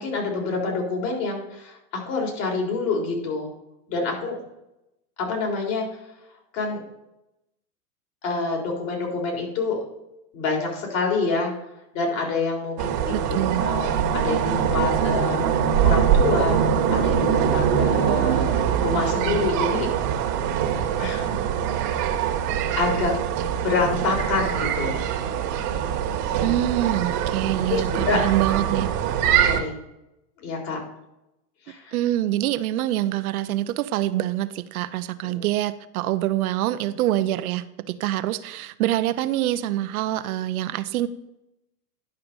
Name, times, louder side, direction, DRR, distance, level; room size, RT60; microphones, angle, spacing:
voice 1, 0.0-1.8 2.0-3.5 3.9-4.4 5.2-6.0 6.5-6.8 8.2-9.8 10.3-11.5 11.9-19.9 21.0-21.3 22.7-23.1 23.6-25.0 27.7-28.2 29.4-29.7 30.4-30.8 31.7-32.0 35.2-35.5, left 3 dB, 55° left, 0 dB, 4.0 m, -27 dB
sound 1, 12.8-29.6, right 8 dB, 45° right, 1.4 m, -23 dB
voice 2, 13.1-13.7 26.4-28.9 31.9-41.1, right 14 dB, 65° right, 13 dB, 0.7 m, -25 dB
11.0 x 5.7 x 5.3 m, 0.87 s
hypercardioid pair, 110°, 47 cm